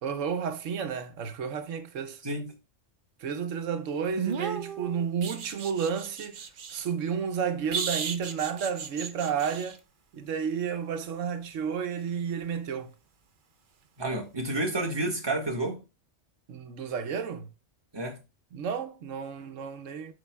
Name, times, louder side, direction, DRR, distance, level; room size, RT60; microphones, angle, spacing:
voice 1, 0.0-2.2 3.2-6.4 6.7-9.8 10.1-12.9 16.5-17.5 18.5-20.1, right 7 dB, 90° right, 1.1 m, -31 dB
voice 2, 2.2-2.5 14.0-15.8 17.9-18.2, right 2 dB, 20° right, 1.5 m, -30 dB
sound 1, 4.1-6.8 7.7-9.8 12.4-12.6, right 6 dB, 50° right, 0.8 m, -35 dB
12.5 x 4.7 x 2.3 m
omnidirectional pair, 1.3 m